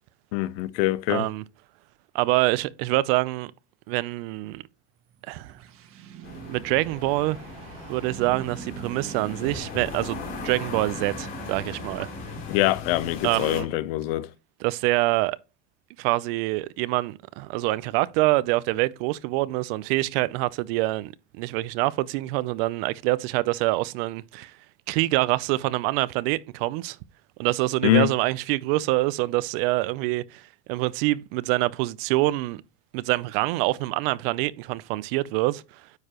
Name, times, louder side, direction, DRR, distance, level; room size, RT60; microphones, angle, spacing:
voice 1, 0.3-1.3 12.5-14.3 27.8-28.1, left 17 dB, 85° left, 0.7 m, -24 dB
voice 2, 1.1-1.4 2.1-3.5 3.9-4.6 5.3-5.6 6.5-7.4 7.9-12.1 13.2-13.7 14.6-15.4 16.0-24.5 24.9-27.0 27.4-32.6 32.9-35.6, right 19 dB, 75° right, 0.6 m, -25 dB
sound 1, 5.0-12.8, right 6 dB, 50° right, 1.3 m, -43 dB
sound 2, 6.2-13.6, left 4 dB, 40° left, 2.9 m, -38 dB
9.5 x 4.7 x 2.9 m
cardioid pair, 145°, 29 cm